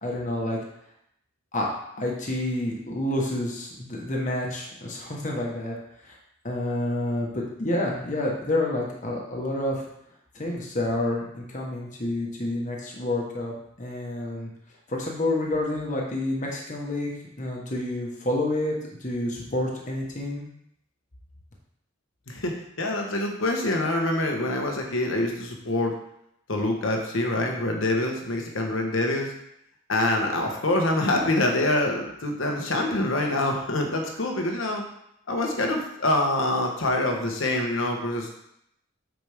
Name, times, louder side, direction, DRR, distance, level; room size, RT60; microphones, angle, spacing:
voice 1, 0.0-0.6 1.5-1.7 2.0-5.7 6.0-6.2 6.4-9.8 10.3-13.5 13.8-14.5 14.9-17.1 17.4-18.7 19.0-20.4, left 1 dB, 35° left, -2 dB, 1.3 m, -28 dB
voice 2, 22.3-26.0 26.5-29.3 29.9-34.8 35.3-38.3, left 1 dB, 80° left, 2 dB, 1.2 m, -25 dB
8.0 x 5.1 x 3.5 m, 0.76 s
head